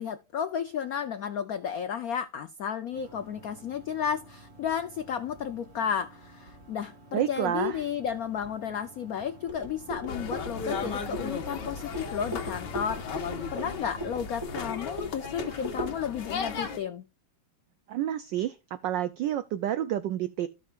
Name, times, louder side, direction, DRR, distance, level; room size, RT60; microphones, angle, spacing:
voice 1, 0.0-13.0 13.5-17.1, left 8 dB, 75° left, 0.8 m, -33 dB
sound 1, 2.9-14.9, right 2 dB, 30° right, 2.0 m, -52 dB
voice 2, 7.1-7.8 17.9-20.5, right 11 dB, 75° right, 1.1 m, -29 dB
sound 2, 9.5-16.0, equal, 10° right, 3.8 m, -39 dB
sound 3, 10.1-16.8, left 5 dB, 55° left, 1.8 m, -36 dB
16.0 x 5.8 x 2.4 m
omnidirectional pair, 2.4 m